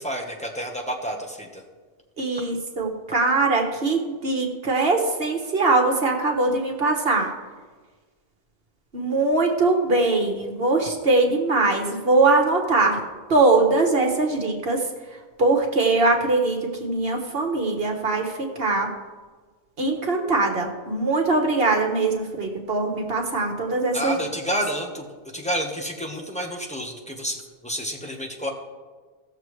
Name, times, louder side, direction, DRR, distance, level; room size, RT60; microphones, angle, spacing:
voice 1, 0.0-1.6 23.9-25.1 25.3-28.5, equal, 5° left, 0 dB, 1.2 m, -30 dB
voice 2, 2.2-7.3 8.9-13.0 13.3-14.9 15.1-18.9 19.8-24.2 24.5-24.6, right 3 dB, 55° right, 2 dB, 1.4 m, -22 dB
17.5 x 6.9 x 3.2 m, 1.4 s
omnidirectional pair, 1.2 m